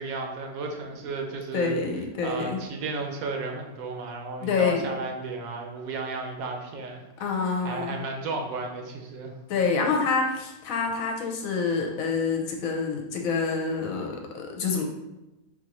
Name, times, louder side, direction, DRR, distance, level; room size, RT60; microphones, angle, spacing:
voice 1, 0.0-1.8 2.2-9.3, right 3 dB, 75° right, 2 dB, 1.0 m, -34 dB
voice 2, 1.5-2.6 4.4-4.9 7.2-8.0 9.5-14.8, left 4 dB, 75° left, 2 dB, 1.0 m, -27 dB
4.0 x 2.5 x 2.9 m, 0.99 s
omnidirectional pair, 1.5 m